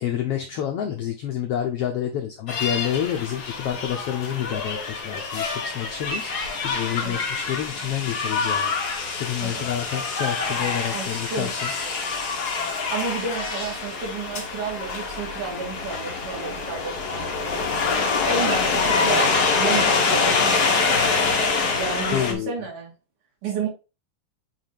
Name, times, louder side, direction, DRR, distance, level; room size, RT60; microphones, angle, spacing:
voice 1, 0.0-8.8 9.1-11.7 22.1-22.6, left 10 dB, 80° left, 3 dB, 1.3 m, -29 dB
sound 1, 2.5-22.3, left 4 dB, 55° left, 1.1 m, -25 dB
voice 2, 10.9-11.5 12.7-17.7 18.3-20.8 21.8-22.9 23.4-23.7, right 5 dB, 75° right, -3 dB, 4.0 m, -31 dB
8.9 x 3.2 x 3.4 m, 0.29 s
omnidirectional pair, 3.7 m